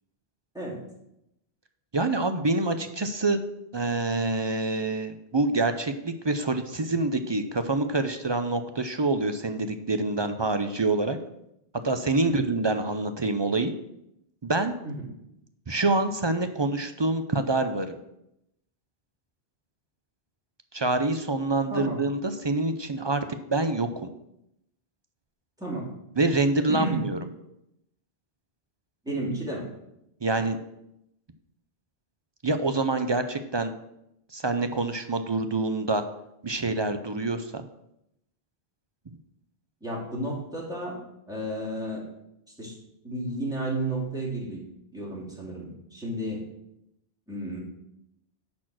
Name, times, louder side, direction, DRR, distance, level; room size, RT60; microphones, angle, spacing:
voice 1, 1.9-3.4 3.7-11.2 11.8-13.7 14.4-14.7 15.7-18.0 20.7-24.1 26.2-27.2 30.2-30.6 32.4-33.7 34.3-36.0 36.4-37.6, right 2 dB, 35° right, 9 dB, 0.4 m, -26 dB
voice 2, 25.6-25.9 26.7-27.0 29.0-29.7 39.8-41.0 41.3-42.0 42.6-42.7 43.0-44.6 44.9-46.4 47.3-47.6, right 1 dB, 5° right, -5 dB, 2.9 m, -32 dB
10.0 x 4.4 x 6.2 m, 0.82 s
omnidirectional pair, 1.1 m